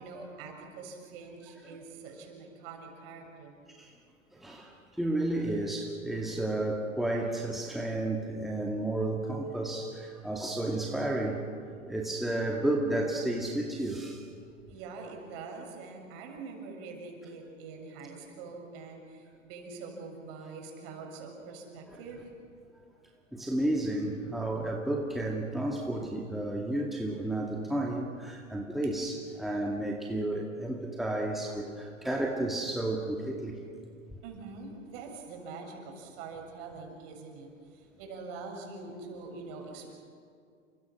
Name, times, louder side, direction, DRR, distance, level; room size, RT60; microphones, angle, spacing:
voice 1, 0.0-3.5 14.7-22.3 34.2-39.9, right 4 dB, 45° right, 2 dB, 7.0 m, -44 dB
voice 2, 4.4-4.7 5.0-11.4 11.9-14.2 23.3-33.6, right 1 dB, ahead, -1 dB, 2.3 m, -32 dB
29.5 x 24.5 x 6.4 m, 2.3 s
figure-of-eight pair, 105°, 39 cm